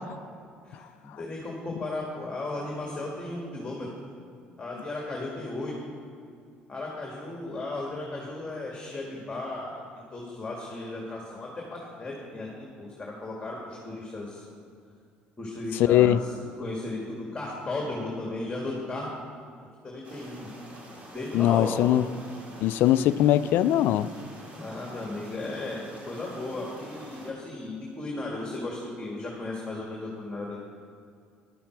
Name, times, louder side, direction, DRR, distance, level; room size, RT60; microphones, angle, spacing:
voice 1, 0.6-3.9 4.6-5.7 6.7-9.8 10.1-12.5 12.8-14.4 15.4-19.1 19.8-20.5 21.1-21.9 24.5-30.6, left 2 dB, 20° left, -2 dB, 2.1 m, -35 dB
voice 2, 15.9-16.2 21.3-22.0 22.6-24.1, left 12 dB, 75° left, 15 dB, 0.3 m, -21 dB
sound 1, 20.0-27.3, right 1 dB, 45° right, 2.4 m, -47 dB
11.0 x 10.5 x 4.6 m, 2.4 s
cardioid pair, 95°, 4 cm